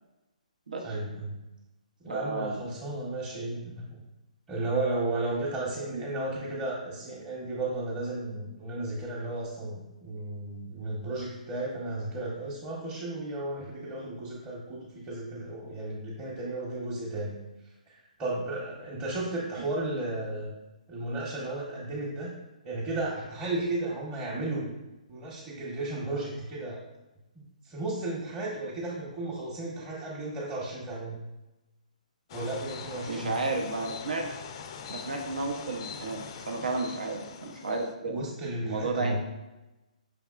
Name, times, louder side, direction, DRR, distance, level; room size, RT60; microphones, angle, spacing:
voice 1, 0.8-1.3 2.0-3.9 4.5-17.3 17.9-20.5 20.9-22.3 22.6-24.7 25.1-26.8 27.6-31.2 32.3-33.4 38.1-39.2, right 2 dB, 15° right, -8 dB, 0.9 m, -34 dB
voice 2, 2.1-2.6 5.9-6.0 33.1-34.3 34.9-38.2 38.6-39.1, right 3 dB, 80° right, 2 dB, 0.7 m, -32 dB
sound 1, 32.3-37.9, left 6 dB, 40° left, 0.4 m, -42 dB
5.8 x 3.5 x 2.4 m, 1.0 s
hypercardioid pair, 140°, 4 cm